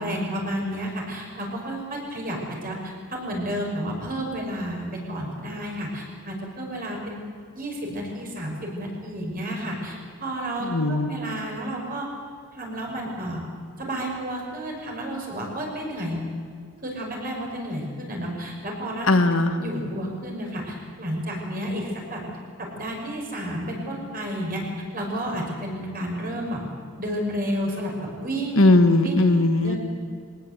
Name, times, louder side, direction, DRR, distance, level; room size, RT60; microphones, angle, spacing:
voice 1, 0.0-7.2 7.5-12.1 12.5-13.4 13.8-16.2 16.8-19.1 19.6-22.2 22.6-24.6 24.9-26.6 27.0-27.9 28.2-28.6 29.0-29.2 29.6-29.8, equal, 40° right, 0 dB, 5.9 m, -31 dB
voice 2, 10.6-11.1 19.1-19.6 28.6-29.7, left 2 dB, 65° left, 7 dB, 1.5 m, -18 dB
22.5 x 18.5 x 8.3 m, 2.1 s
head